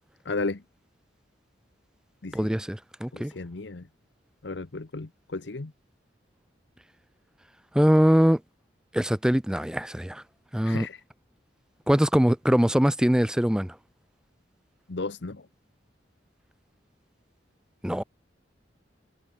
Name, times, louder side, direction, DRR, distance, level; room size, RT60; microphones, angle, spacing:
voice 1, 0.2-0.6 2.2-2.5 3.1-3.9 4.4-5.7 10.6-11.0 14.9-15.5, left 3 dB, 70° left, 0.9 m, -34 dB
voice 2, 2.3-3.3 7.7-8.4 8.9-10.2 10.5-10.9 11.9-13.7 17.8-18.0, equal, 5° right, 0.5 m, -22 dB
head